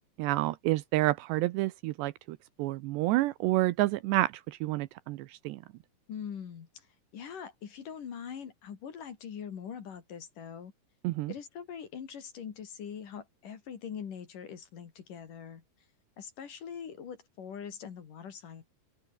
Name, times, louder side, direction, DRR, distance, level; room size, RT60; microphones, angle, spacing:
voice 1, 0.2-5.6 11.0-11.3, right 17 dB, 80° right, 2.7 m, -29 dB
voice 2, 6.1-6.9 7.1-10.7 11.3-15.6 16.2-18.7, left 7 dB, 50° left, 3.6 m, -42 dB
open air
omnidirectional pair, 5.4 m